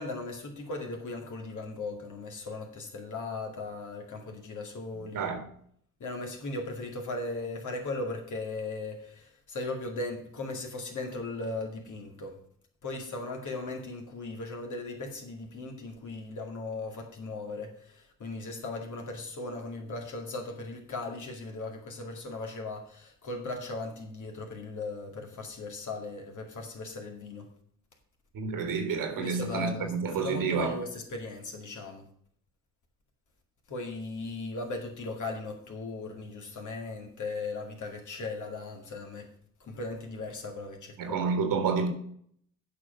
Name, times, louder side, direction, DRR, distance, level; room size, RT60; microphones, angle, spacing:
voice 1, 0.0-5.3 6.0-12.4 12.8-27.5 29.2-29.9 30.2-32.1 33.7-39.3 39.6-41.2, left 2 dB, 60° left, 2.3 m, -38 dB
voice 2, 4.9-5.5 28.3-30.8 41.0-41.9, right 5 dB, 75° right, 1.8 m, -29 dB
8.1 x 5.0 x 6.5 m
supercardioid pair, 60°, 33 cm